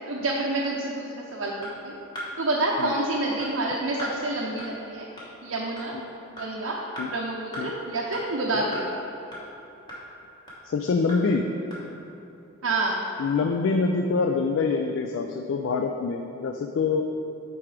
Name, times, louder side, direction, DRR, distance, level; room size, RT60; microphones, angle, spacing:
voice 1, 0.1-1.9 2.4-5.1 5.4-5.9 6.3-6.8 7.0-8.8 12.6-13.0, right 2 dB, 75° right, -4 dB, 0.7 m, -28 dB
sound 1, 1.6-1.7 2.2-2.3 2.8-2.9 3.4-3.5 4.0-4.1 4.6-4.7 5.2-5.3 5.8-5.9 6.4-6.5 7.0-7.1 7.5-7.6 8.1-8.2 8.7-8.8 9.3-9.4 9.9-10.0 10.5-10.6 11.1-11.2 11.7-11.8, equal, 20° left, 1.2 m, -36 dB
voice 2, 10.6-11.5 13.2-17.0, left 4 dB, 60° left, 4 dB, 0.3 m, -25 dB
8.5 x 4.5 x 3.3 m, 3.0 s
head